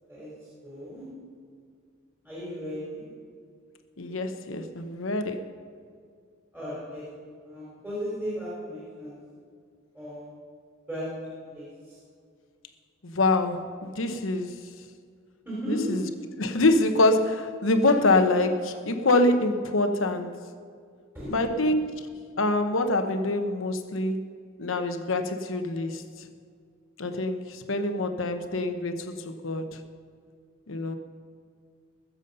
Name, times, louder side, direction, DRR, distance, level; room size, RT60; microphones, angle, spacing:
voice 1, 0.6-1.1 2.2-3.0 6.5-7.0 7.4-9.2 9.9-10.3 10.9-12.0 15.5-16.0 21.1-21.5, equal, 10° right, -8 dB, 3.9 m, -35 dB
voice 2, 4.0-5.4 13.0-14.6 15.7-16.0 16.4-20.3 21.3-21.9 22.4-24.3 24.6-26.3 27.0-29.8 30.7-31.0, left 2 dB, 75° left, 7 dB, 1.0 m, -25 dB
20.5 x 7.3 x 5.5 m, 2.1 s
head